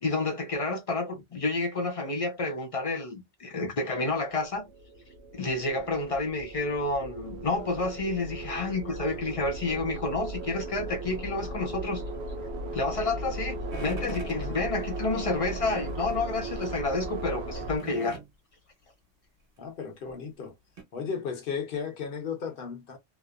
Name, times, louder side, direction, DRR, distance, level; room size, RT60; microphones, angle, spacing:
voice 1, 0.0-4.7 5.3-12.0 12.7-18.2, left 2 dB, 45° left, 0.5 m, -30 dB
sound 1, 4.3-17.8, right 2 dB, 80° right, 0.8 m, -37 dB
sound 2, 13.7-14.4 15.6-16.2 16.6-16.7 17.8-18.3 19.6-19.7 20.1-20.2 20.8-20.9, right 2 dB, 60° right, 1.3 m, -41 dB
voice 2, 14.1-14.6 19.6-20.5 20.9-23.0, left 6 dB, 60° left, 0.9 m, -35 dB
2.8 x 2.0 x 2.3 m
omnidirectional pair, 1.1 m